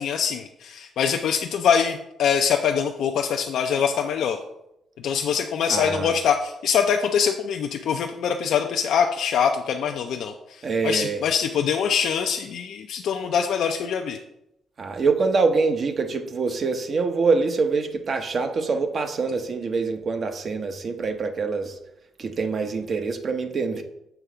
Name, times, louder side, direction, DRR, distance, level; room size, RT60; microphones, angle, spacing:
voice 1, 0.0-4.4 5.0-14.2, left 7 dB, 75° left, 3 dB, 0.4 m, -24 dB
voice 2, 5.7-6.2 10.6-11.2 14.8-21.8 22.2-23.8, right 4 dB, 45° right, 7 dB, 0.8 m, -25 dB
6.9 x 3.4 x 4.9 m, 0.83 s
cardioid pair, 90°, 0 cm